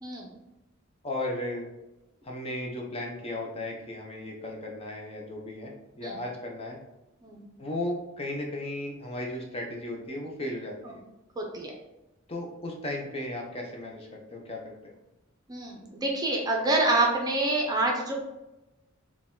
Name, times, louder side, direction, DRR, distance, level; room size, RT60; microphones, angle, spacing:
voice 1, 1.0-1.7 2.2-6.8 7.6-11.0 12.3-14.9, left 1 dB, 30° left, 0 dB, 0.6 m, -35 dB
voice 2, 11.4-11.7 15.5-18.1, right 2 dB, 20° right, 0 dB, 0.6 m, -27 dB
4.5 x 2.3 x 3.6 m, 0.96 s
head